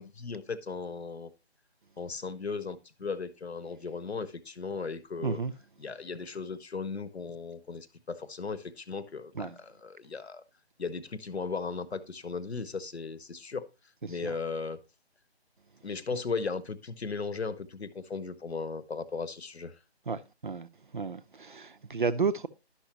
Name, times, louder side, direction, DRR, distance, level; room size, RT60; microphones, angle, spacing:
voice 1, 0.0-1.3 2.0-5.4 5.8-10.4 10.8-13.7 14.1-14.8 15.8-19.8, left 4 dB, 75° left, 0.9 m, -36 dB
voice 2, 5.2-5.5 9.4-9.6 20.1-20.7 20.9-22.5, right 5 dB, 50° right, 0.6 m, -32 dB
11.5 x 6.1 x 2.9 m
figure-of-eight pair, 155°, 33 cm